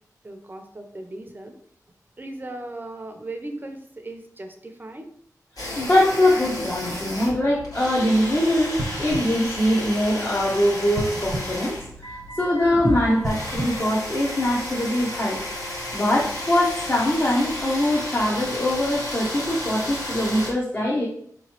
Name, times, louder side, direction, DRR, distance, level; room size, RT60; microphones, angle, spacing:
voice 1, 0.2-1.5 2.2-5.1, right 2 dB, 30° right, 5 dB, 0.6 m, -37 dB
sound 1, 5.6-20.5, left 1 dB, 70° left, 1.4 m, -33 dB
voice 2, 5.7-15.4 15.9-21.1, left 1 dB, 30° left, -4 dB, 0.8 m, -22 dB
sound 2, 8.8-10.4 10.9-12.5 13.1-14.8 15.4-15.5, right 1 dB, 80° right, 0.8 m, -34 dB
4.3 x 3.0 x 2.9 m, 0.64 s
wide cardioid pair, 80°, 7 cm